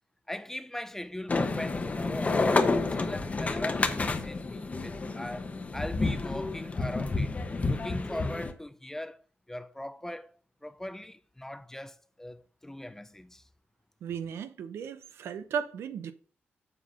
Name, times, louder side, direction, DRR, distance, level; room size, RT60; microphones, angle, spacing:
voice 1, 0.3-9.2 9.5-10.3 10.6-13.4, left 1 dB, 10° left, 0.5 m, -40 dB
sound 1, 1.3-8.5, left 3 dB, 35° left, 1.0 m, -29 dB
voice 2, 14.0-16.1, right 7 dB, 85° right, 0.6 m, -35 dB
7.7 x 4.0 x 5.4 m
cardioid pair, 70°, 4 cm